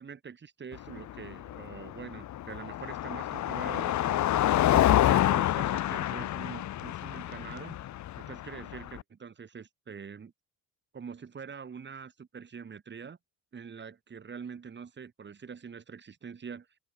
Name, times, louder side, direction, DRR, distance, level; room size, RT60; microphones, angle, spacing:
voice 1, 0.0-4.2 4.7-7.8 8.2-10.3 10.9-13.2 13.5-16.7, right 6 dB, 30° right, 4.5 m, -44 dB
Car passing by, 0.7-9.0, left 13 dB, 50° left, 0.9 m, -28 dB
open air
cardioid pair, 155°, 36 cm